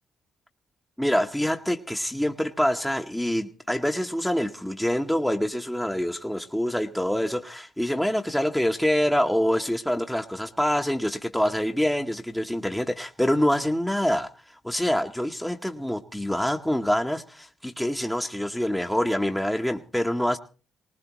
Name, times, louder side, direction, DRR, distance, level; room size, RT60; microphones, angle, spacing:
voice 1, 1.0-20.4, equal, 5° left, 3 dB, 0.9 m, -26 dB
20.0 x 18.5 x 3.0 m, 0.37 s
cardioid pair, 70°, 0 cm